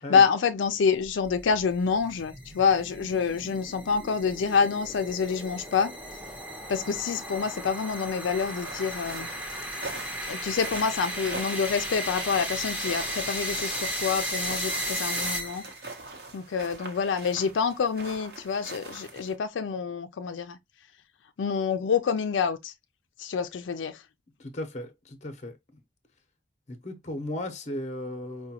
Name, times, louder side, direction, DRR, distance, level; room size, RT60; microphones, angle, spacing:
voice 1, 0.1-5.9 6.7-9.3 10.3-15.6 16.3-20.6 21.4-22.7 23.2-24.0, left 6 dB, 85° left, 0.4 m, -27 dB
sound 1, 1.1-15.9, equal, 10° right, 0.7 m, -35 dB
sound 2, 8.4-19.4, right 2 dB, 55° right, 0.8 m, -43 dB
voice 2, 24.4-25.6 26.7-28.5, left 1 dB, 40° left, 0.7 m, -36 dB
4.8 x 2.2 x 2.8 m
head